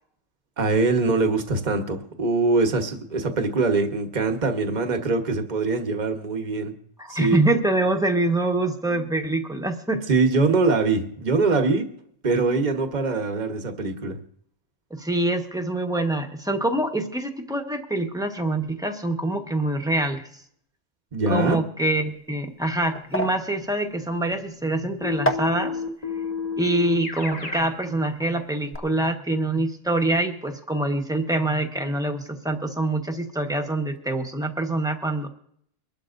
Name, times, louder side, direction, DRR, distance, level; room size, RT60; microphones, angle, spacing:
voice 1, 0.6-6.7 7.1-7.4 10.1-11.9 12.2-14.2 21.1-21.6, right 3 dB, 35° right, 6 dB, 1.2 m, -23 dB
voice 2, 7.0-10.0 14.9-20.4 21.3-25.8 26.6-35.3, right 2 dB, 5° right, 4 dB, 1.1 m, -25 dB
sound 1, 22.0-28.2 28.5-28.8, equal, 15° left, 0.7 m, -33 dB
Keyboard (musical), 25.0-27.8, left 5 dB, 30° left, 1.5 m, -31 dB
24.0 x 12.0 x 2.6 m, 0.68 s
omnidirectional pair, 1.4 m